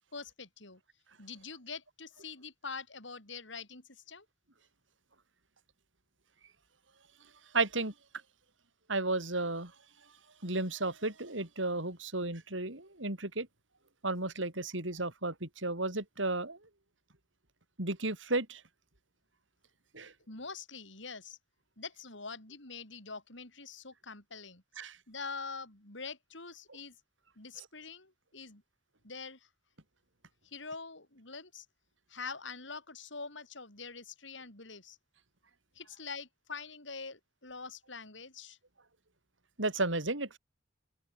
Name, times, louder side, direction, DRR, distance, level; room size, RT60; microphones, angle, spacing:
voice 1, 0.1-0.8 1.2-4.3 20.3-21.4 21.8-24.6 25.1-26.9 27.4-28.6 29.0-29.5 30.4-31.6 32.1-35.0 35.7-38.6, left 4 dB, 65° left, 6.6 m, -45 dB
voice 2, 7.5-7.9 8.9-9.7 10.4-13.5 14.0-16.6 17.8-18.6 19.9-20.1 24.8-25.0 39.6-40.4, right 2 dB, 70° right, 5.4 m, -33 dB
open air
head